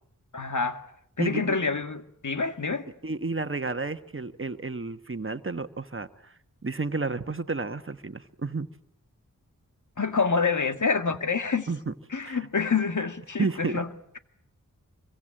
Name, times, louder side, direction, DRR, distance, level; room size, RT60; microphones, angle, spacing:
voice 1, 0.3-0.8 1.2-2.8 10.0-11.7 12.1-13.9, left 5 dB, 65° left, 1.9 m, -27 dB
voice 2, 1.2-1.6 3.0-6.3 6.6-8.7 11.7-11.9 12.2-12.5 13.4-13.8, right 3 dB, 40° right, 1.3 m, -31 dB
25.5 x 23.5 x 8.9 m
wide cardioid pair, 60°, 33 cm